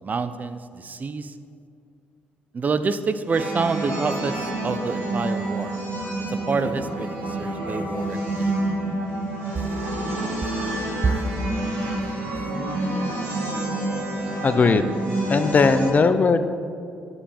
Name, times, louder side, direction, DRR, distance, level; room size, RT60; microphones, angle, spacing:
voice 1, 0.0-1.3 2.5-5.8 6.3-8.5 9.6-9.7 11.0-11.2, right 4 dB, 40° right, 12 dB, 0.5 m, -27 dB
sound 1, 3.3-15.9, right 1 dB, 80° right, 2.4 m, -28 dB
voice 2, 14.4-14.8 15.3-16.5, left 4 dB, 40° left, 10 dB, 0.6 m, -18 dB
12.5 x 5.4 x 4.4 m, 2.3 s
supercardioid pair, 60°, 4 cm